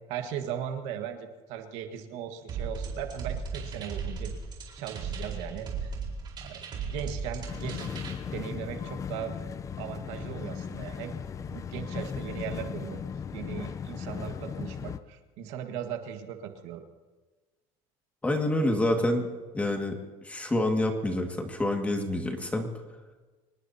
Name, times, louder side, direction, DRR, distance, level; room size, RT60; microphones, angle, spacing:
voice 1, 0.1-4.3 4.7-5.9 6.4-7.9 8.3-9.3 9.8-11.1 11.5-13.0 13.3-16.8, right 9 dB, 70° right, 6 dB, 1.6 m, -38 dB
sound 1, 2.5-8.1, right 5 dB, 40° right, 4.3 m, -36 dB
sound 2, 7.5-15.0, left 7 dB, 25° left, 0.5 m, -37 dB
voice 2, 18.2-19.3 19.5-22.7, left 1 dB, 10° left, 3 dB, 2.0 m, -27 dB
26.0 x 19.5 x 2.9 m, 1.3 s
cardioid pair, 130°, 12 cm